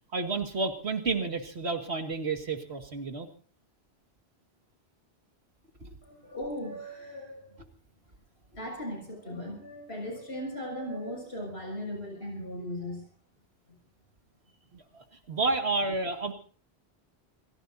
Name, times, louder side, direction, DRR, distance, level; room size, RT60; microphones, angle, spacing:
voice 1, 0.1-3.3 5.8-5.9 14.7-16.3, right 3 dB, 80° right, 4 dB, 2.3 m, -31 dB
voice 2, 6.0-7.6 8.6-13.1, left 1 dB, 75° left, 2 dB, 7.4 m, -38 dB
28.0 x 17.5 x 2.7 m, 0.40 s
omnidirectional pair, 1.1 m